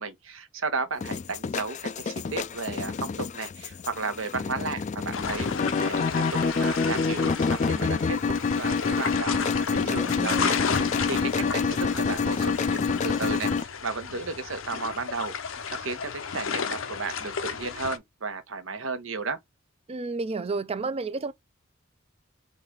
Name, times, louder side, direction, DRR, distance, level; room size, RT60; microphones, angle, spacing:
voice 1, 0.0-5.5 5.8-10.6 11.1-15.3 15.7-19.4, right 4 dB, 80° right, 1.0 m, -34 dB
sound 1, 1.0-13.6, left 5 dB, 35° left, 0.3 m, -27 dB
sound 2, 5.1-18.0, left 6 dB, 75° left, 0.7 m, -33 dB
Bowed string instrument, 5.7-11.0, equal, 10° right, 0.8 m, -48 dB
voice 2, 9.7-10.5 19.9-21.3, right 3 dB, 30° right, 0.5 m, -32 dB
4.1 x 3.3 x 3.7 m
head